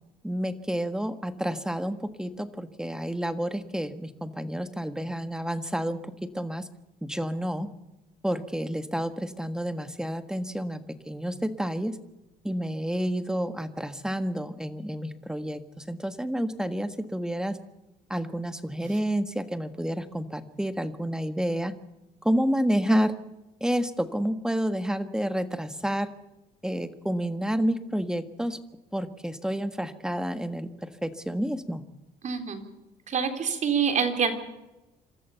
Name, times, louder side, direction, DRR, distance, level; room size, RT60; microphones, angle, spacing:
voice 1, 0.2-6.7 7.0-7.7 8.2-12.0 12.4-17.6 18.1-21.7 22.2-23.1 23.6-26.1 26.6-28.6 28.9-31.8, equal, 5° right, 11 dB, 1.6 m, -29 dB
voice 2, 32.2-32.6 33.1-34.3, right 6 dB, 45° right, 7 dB, 3.6 m, -26 dB
26.5 x 14.0 x 7.0 m, 0.99 s
cardioid pair, 110°, 17 cm